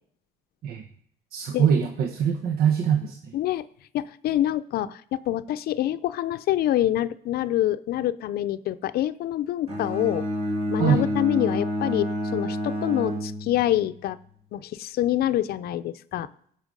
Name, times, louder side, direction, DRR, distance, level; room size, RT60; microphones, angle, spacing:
voice 1, 1.3-3.3 10.8-11.1, right 8 dB, 65° right, 5 dB, 1.0 m, -23 dB
voice 2, 3.3-3.7 3.9-10.2 10.7-14.2 14.5-16.3, left 13 dB, 65° left, 13 dB, 0.6 m, -26 dB
Bowed string instrument, 9.7-13.9, equal, 35° right, 2.9 m, -29 dB
16.5 x 5.6 x 5.3 m, 0.64 s
cardioid pair, 110°, 17 cm